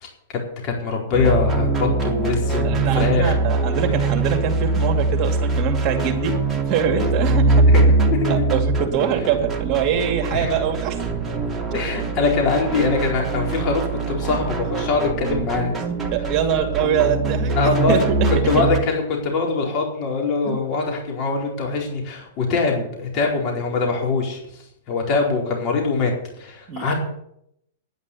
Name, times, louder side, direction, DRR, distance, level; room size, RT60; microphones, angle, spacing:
voice 1, 0.3-3.3 7.7-8.4 10.3-10.5 11.7-15.7 17.6-26.9, left 4 dB, 40° left, -1 dB, 4.4 m, -23 dB
sound 1, 1.1-18.8, right 3 dB, 10° right, 2.7 m, -22 dB
voice 2, 2.6-6.4 6.7-7.7 8.3-11.0 16.1-18.3 18.6-18.7 20.4-20.6 26.7-26.9, right 7 dB, 40° right, 4 dB, 2.6 m, -23 dB
10.5 x 10.0 x 8.6 m, 0.77 s
hypercardioid pair, 120°, 0 cm